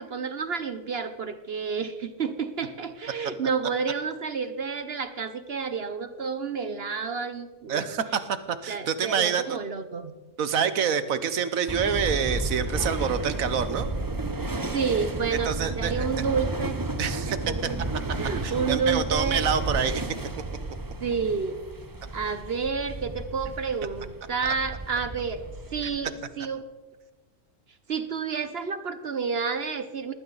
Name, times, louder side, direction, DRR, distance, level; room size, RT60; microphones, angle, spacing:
voice 1, 0.0-7.9 8.7-10.2 14.7-17.6 18.1-19.5 21.0-21.6 22.1-25.4 25.7-26.7 27.9-30.1, right 5 dB, 50° right, 11 dB, 1.0 m, -30 dB
voice 2, 7.7-9.6 10.4-13.9 15.4-16.1 17.0-17.4 18.4-20.1 24.4-24.5, right 7 dB, 85° right, 12 dB, 1.5 m, -27 dB
sound 1, 11.7-26.0, right 2 dB, 20° right, 0.8 m, -32 dB
19.5 x 15.5 x 4.0 m, 1.2 s
omnidirectional pair, 1.4 m